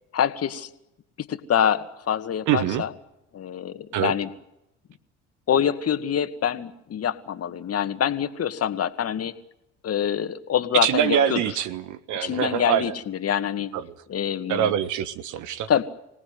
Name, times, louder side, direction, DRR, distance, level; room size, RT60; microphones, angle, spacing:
voice 1, 0.1-0.7 1.2-2.9 3.3-4.3 5.5-9.3 9.8-11.4 12.2-13.7 14.1-14.7 15.7-15.8, left 9 dB, 45° left, 10 dB, 2.2 m, -25 dB
voice 2, 2.5-2.8 3.9-4.1 10.7-12.9 13.7-13.9 14.5-15.7, right 10 dB, 55° right, 14 dB, 1.5 m, -24 dB
26.0 x 18.5 x 9.5 m, 0.88 s
hypercardioid pair, 60°, 35 cm